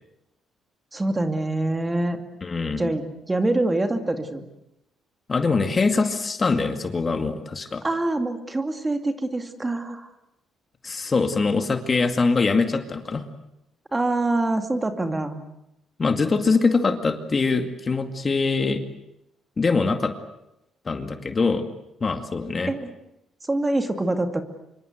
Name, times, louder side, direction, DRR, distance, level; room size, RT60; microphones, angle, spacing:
voice 1, 0.9-2.2 2.8-4.5 7.8-10.1 13.9-15.4 22.7-22.9 23.4-24.4, right 2 dB, 15° right, 7 dB, 2.4 m, -25 dB
voice 2, 2.4-2.9 5.3-7.8 10.8-13.2 16.0-18.8 19.6-20.1 20.9-21.6 22.0-22.7, left 4 dB, 30° left, 7 dB, 2.2 m, -23 dB
26.5 x 24.0 x 8.1 m, 0.85 s
cardioid pair, 110°, 0 cm